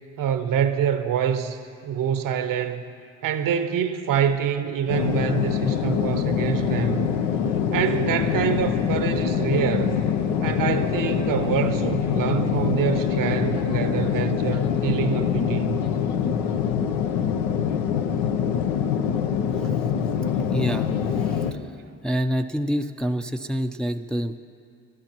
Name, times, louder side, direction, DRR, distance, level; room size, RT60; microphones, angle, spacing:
voice 1, 0.2-2.8 3.2-7.1 7.7-10.0 10.4-15.8, right 8 dB, 60° right, 11 dB, 0.8 m, -26 dB
sound 1, 4.9-21.5, left 8 dB, 80° left, 0.8 m, -24 dB
voice 2, 20.5-20.9 21.2-21.6 22.0-24.4, equal, ahead, 6 dB, 0.5 m, -27 dB
23.0 x 12.5 x 3.0 m, 2.3 s
hypercardioid pair, 50°, 38 cm